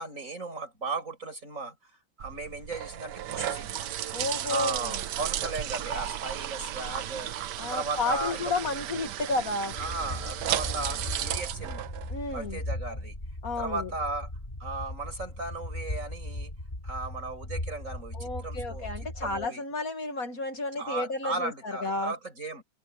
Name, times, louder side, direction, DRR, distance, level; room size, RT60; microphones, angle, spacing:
voice 1, 0.0-1.9 2.2-3.8 4.5-8.5 9.7-11.9 12.3-13.2 13.6-14.3 14.6-16.5 16.8-18.9 19.2-19.6 20.8-22.6, right 3 dB, 45° right, 6.1 m, -36 dB
sound 1, 2.2-12.6, right 11 dB, 70° right, 1.4 m, -34 dB
voice 2, 4.1-5.0 7.6-9.8 12.1-12.6 13.4-13.9 18.1-22.1, left 3 dB, 50° left, 2.3 m, -32 dB
sound 2, 9.7-19.5, left 1 dB, 25° left, 5.7 m, -38 dB
open air
omnidirectional pair, 2.0 m